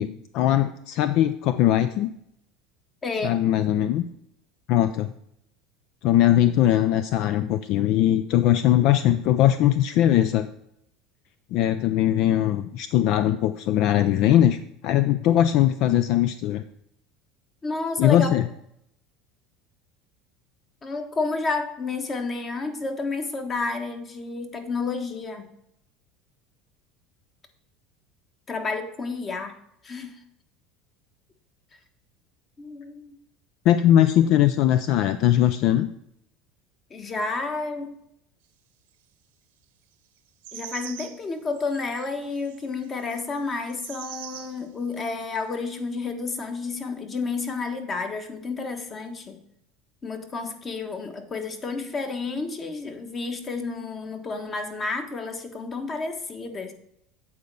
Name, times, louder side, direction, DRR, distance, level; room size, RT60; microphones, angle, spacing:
voice 1, 0.0-2.1 3.2-4.0 4.7-5.1 6.0-10.5 11.5-14.6 14.8-16.6 18.0-18.5 33.7-35.9, left 12 dB, 60° left, 12 dB, 0.4 m, -20 dB
voice 2, 3.0-3.4 17.6-18.4 20.8-25.5 28.5-29.6 29.8-30.2 32.6-33.1 36.9-38.0 40.5-49.4 50.0-56.7, left 3 dB, 30° left, 6 dB, 1.4 m, -30 dB
sound 1, 40.4-41.3 41.5-44.6 45.2-45.3, right 11 dB, 85° right, 0.9 m, -42 dB
8.5 x 4.1 x 6.8 m, 0.75 s
supercardioid pair, 100°, 0 cm